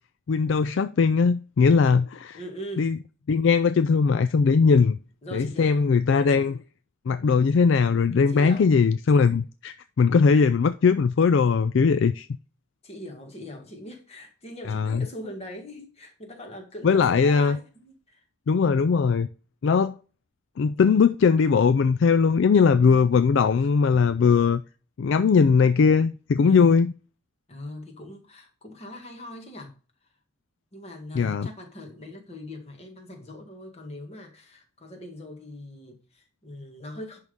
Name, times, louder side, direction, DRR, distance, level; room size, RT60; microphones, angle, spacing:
voice 1, 0.3-2.4 2.8-3.0 3.3-5.0 5.3-6.6 7.1-12.3 14.7-15.1 16.8-17.6 18.5-19.3 19.6-19.9 20.6-24.6 25.0-26.9 31.1-31.5, left 5 dB, 55° left, 0.3 m, -20 dB
voice 2, 2.3-2.9 5.2-5.9 8.3-8.8 12.8-18.2 26.4-26.7 27.5-29.8 30.7-37.2, left 1 dB, 30° left, 1.8 m, -41 dB
10.5 x 3.6 x 5.3 m
head